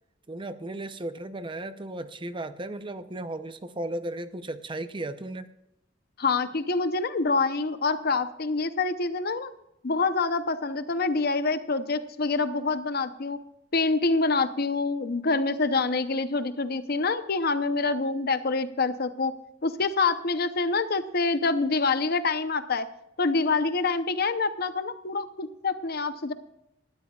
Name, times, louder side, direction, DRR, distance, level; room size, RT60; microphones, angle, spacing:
voice 1, 0.3-5.5, right 1 dB, 25° right, 0.7 m, -35 dB
voice 2, 6.2-9.5 9.8-13.4 13.7-19.3 19.6-22.9 23.2-26.3, left 3 dB, 55° left, 0.8 m, -26 dB
19.0 x 12.5 x 2.4 m
head